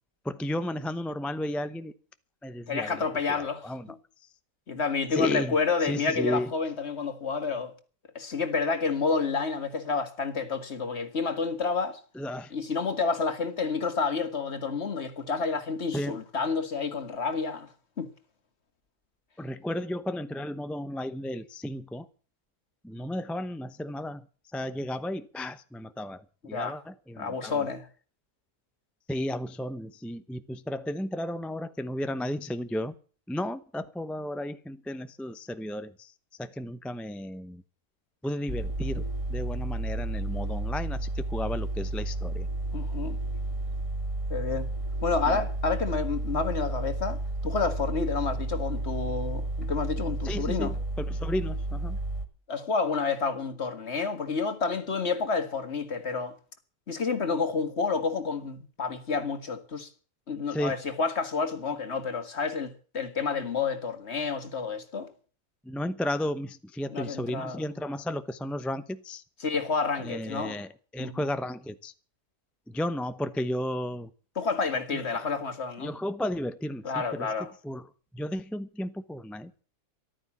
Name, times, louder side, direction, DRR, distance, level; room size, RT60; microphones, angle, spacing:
voice 1, 0.2-1.9 2.4-3.9 5.1-5.6 5.8-6.5 12.1-12.5 15.9-16.2 19.4-22.1 22.8-24.3 24.5-27.7 29.1-32.9 33.3-36.1 36.4-37.6 38.2-42.5 45.3-45.4 50.2-52.0 60.5-60.8 65.6-69.2 70.0-71.9 72.7-74.1 74.9-75.3 75.8-77.3 77.6-77.9 78.1-79.5, left 1 dB, ahead, 0.5 m, -34 dB
voice 2, 2.7-3.7 4.7-7.7 8.2-12.0 12.5-17.7 18.0-18.1 26.5-26.8 27.2-27.8 42.7-43.2 44.3-44.7 45.0-50.7 52.5-56.3 56.9-59.9 60.3-65.1 66.9-67.6 69.4-70.6 71.0-71.2 74.4-75.9 76.8-77.5, left 4 dB, 45° left, 2.0 m, -29 dB
sound 1, 38.5-52.3, right 2 dB, 20° right, 1.9 m, -32 dB
14.0 x 12.5 x 7.1 m
omnidirectional pair, 1.6 m